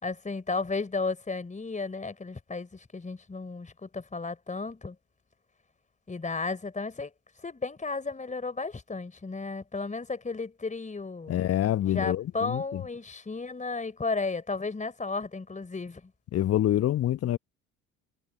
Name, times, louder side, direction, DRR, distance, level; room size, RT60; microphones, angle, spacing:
voice 1, 0.0-5.0 6.1-7.1 7.4-11.4 11.9-16.1, left 3 dB, 20° left, 4.2 m, -34 dB
voice 2, 11.3-12.8 16.3-17.4, left 12 dB, 35° left, 1.0 m, -26 dB
figure-of-eight pair, 55°, 40 cm